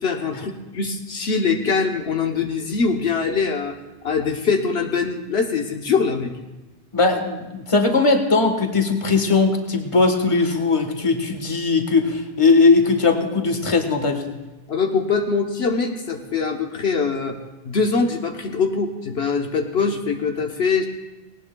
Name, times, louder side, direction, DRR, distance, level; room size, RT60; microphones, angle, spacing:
voice 1, 0.0-3.7 4.0-6.3 14.7-17.4 17.6-20.9, left 5 dB, 75° left, 3 dB, 1.2 m, -23 dB
voice 2, 6.9-14.3, left 3 dB, 30° left, 5 dB, 1.4 m, -19 dB
18.5 x 18.5 x 2.3 m, 1.1 s
omnidirectional pair, 1.1 m